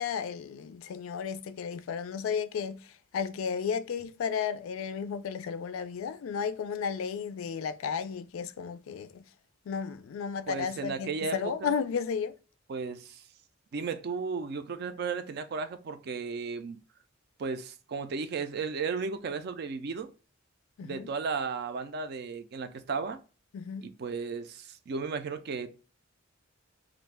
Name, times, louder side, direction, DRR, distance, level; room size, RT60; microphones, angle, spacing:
voice 1, 0.0-2.9 3.1-9.2 9.7-12.3 20.8-21.1 23.5-23.9, left 6 dB, 80° left, 0.3 m, -33 dB
voice 2, 10.5-11.8 12.7-13.2 13.7-16.8 17.4-20.1 20.8-23.2 23.8-25.7, right 5 dB, 50° right, 0.3 m, -34 dB
2.4 x 2.1 x 3.2 m
head